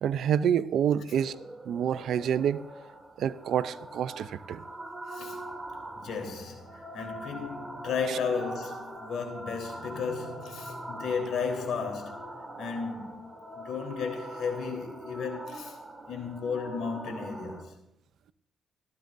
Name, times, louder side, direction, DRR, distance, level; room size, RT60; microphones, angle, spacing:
voice 1, 0.0-1.4 1.7-2.6 3.2-4.6 8.1-8.2, right 9 dB, 70° right, 0.6 m, -27 dB
sound 1, 1.1-17.6, right 1 dB, 10° right, 2.7 m, -43 dB
voice 2, 5.1-5.4 6.0-12.2 12.6-13.2 13.5-15.8 16.0-17.8, left 5 dB, 75° left, 3.8 m, -34 dB
17.5 x 14.5 x 2.7 m
cardioid pair, 90°, 0 cm